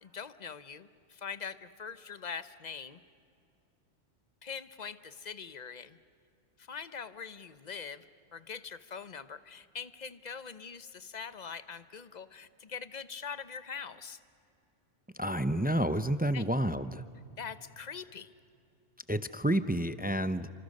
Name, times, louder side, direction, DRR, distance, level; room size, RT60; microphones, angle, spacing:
voice 1, 0.0-3.0 4.4-6.0 6.6-8.1 8.3-14.2 16.3-16.4 17.4-18.3, left 6 dB, 40° left, 14 dB, 0.9 m, -43 dB
voice 2, 15.2-17.0 19.1-20.5, right 1 dB, 15° right, 12 dB, 0.3 m, -29 dB
29.5 x 25.5 x 6.5 m, 2.6 s
omnidirectional pair, 1.3 m